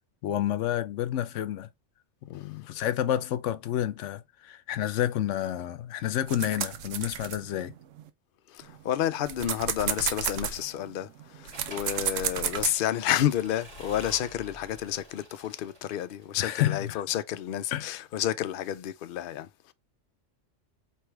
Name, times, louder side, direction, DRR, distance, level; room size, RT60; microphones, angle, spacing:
voice 1, 0.2-1.7 2.3-7.7 16.4-17.0 17.7-18.0, left 11 dB, 75° left, 0.9 m, -29 dB
sound 1, 6.3-8.1 8.6-12.7, right 9 dB, 90° right, 1.0 m, -32 dB
voice 2, 8.5-11.1 11.4-19.7, left 11 dB, 60° left, 0.6 m, -30 dB
Accelerating revving vroom / Mechanisms, 11.5-16.4, right 1 dB, 55° right, 2.7 m, -48 dB
4.6 x 3.2 x 3.2 m
omnidirectional pair, 1.3 m